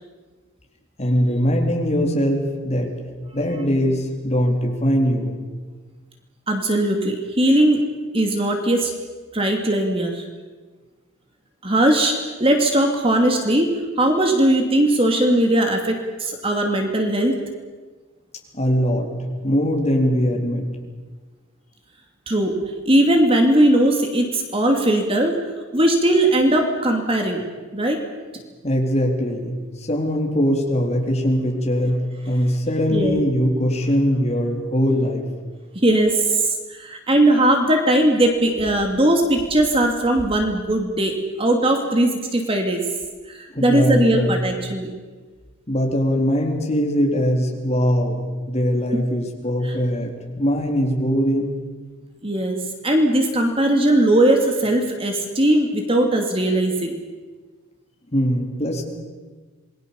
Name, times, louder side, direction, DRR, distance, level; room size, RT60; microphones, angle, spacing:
voice 1, 1.0-2.9 3.3-5.4 18.5-19.1 19.4-20.6 28.6-29.6 29.9-35.2 43.5-44.4 45.7-48.2 48.5-51.5 58.1-58.8, equal, 30° left, 1 dB, 4.0 m, -21 dB
voice 2, 6.5-8.9 9.3-10.2 11.6-17.4 22.3-22.6 22.9-25.5 25.7-27.5 27.7-28.0 32.9-33.2 35.7-42.9 43.3-44.9 49.6-49.7 52.2-57.0, right 1 dB, 25° right, 3 dB, 2.6 m, -19 dB
27.5 x 21.0 x 7.1 m, 1.4 s
head